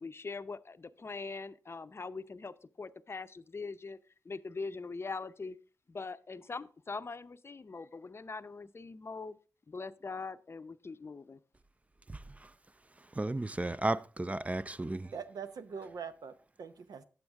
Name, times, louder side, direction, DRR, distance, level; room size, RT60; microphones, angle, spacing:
voice 1, 0.0-4.0 4.2-5.6 5.9-9.4 9.7-11.4, left 4 dB, 40° left, 0.6 m, -42 dB
voice 2, 12.1-12.5 13.1-15.1, right 2 dB, 20° right, 0.4 m, -34 dB
voice 3, 15.1-17.0, right 6 dB, 75° right, 0.7 m, -43 dB
9.0 x 7.9 x 3.5 m
supercardioid pair, 45°, 7 cm